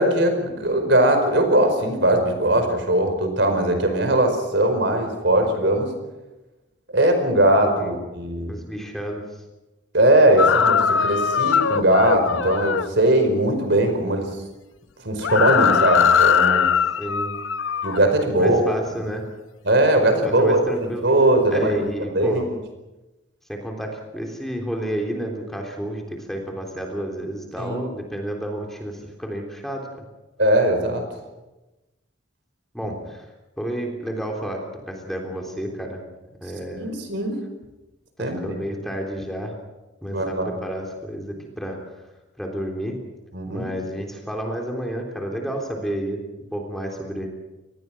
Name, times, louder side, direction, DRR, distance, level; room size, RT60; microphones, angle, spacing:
voice 1, 0.0-5.9 6.9-8.5 9.9-14.4 15.0-16.7 17.8-18.6 19.6-21.9 22.1-22.4 27.6-27.9 30.4-31.1 36.8-37.4 38.2-38.5 40.0-40.6 43.3-43.7, right 1 dB, 60° right, 6 dB, 4.9 m, -20 dB
voice 2, 8.5-9.4 17.0-17.4 18.4-19.2 20.2-21.0 21.5-22.5 23.5-29.9 32.7-33.3 33.6-36.0 36.4-36.9 38.2-39.5 40.0-41.8 42.4-43.0 43.5-46.2 46.5-47.3, right 1 dB, ahead, 1 dB, 3.5 m, -30 dB
sound 1, 10.4-12.9 15.2-18.1, left 7 dB, 75° left, 0.7 m, -20 dB
26.5 x 20.0 x 6.2 m, 1.1 s
head